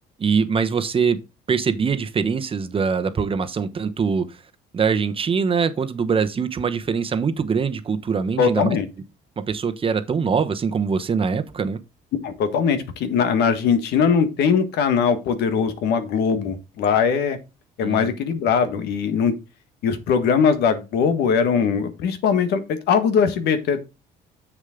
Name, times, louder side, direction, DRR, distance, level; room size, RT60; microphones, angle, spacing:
voice 1, 0.2-1.2 1.5-4.4 4.7-8.8 9.4-11.8 17.8-18.2, right 5 dB, 35° right, 1.0 m, -23 dB
voice 2, 8.4-8.9 12.2-17.4 17.8-19.3 19.8-23.8, left 6 dB, 75° left, 1.6 m, -20 dB
7.4 x 6.7 x 3.7 m
cardioid pair, 110°, 17 cm